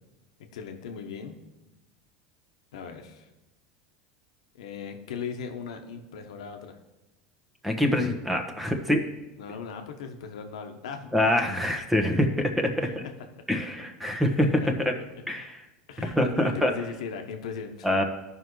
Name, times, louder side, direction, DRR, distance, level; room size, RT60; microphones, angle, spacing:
voice 1, 0.5-1.4 2.7-3.3 4.5-6.8 9.4-11.3 12.8-13.0 13.4-13.5 14.4-14.7 15.9-17.9, left 6 dB, 85° left, 5 dB, 1.0 m, -38 dB
voice 2, 7.6-9.1 11.1-13.1 13.5-14.9 15.3-15.6 16.0-16.7 17.8-18.0, left 1 dB, 5° right, 3 dB, 1.2 m, -25 dB
14.0 x 5.5 x 3.2 m, 1.0 s
supercardioid pair, 105°, 3 cm